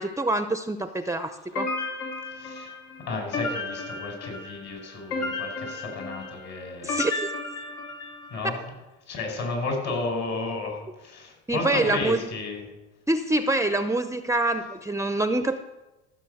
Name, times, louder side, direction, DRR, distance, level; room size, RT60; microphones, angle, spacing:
voice 1, 0.0-1.7 6.8-7.3 11.5-12.2 13.1-15.6, right 2 dB, 10° right, 9 dB, 0.6 m, -25 dB
sound 1, 1.6-8.5, left 3 dB, 75° left, 3.8 m, -33 dB
voice 2, 2.3-2.8 3.0-7.0 8.3-8.7 9.1-12.7, left 3 dB, 55° left, 2 dB, 5.1 m, -33 dB
14.5 x 6.7 x 7.9 m, 1.1 s
cardioid pair, 105°, 32 cm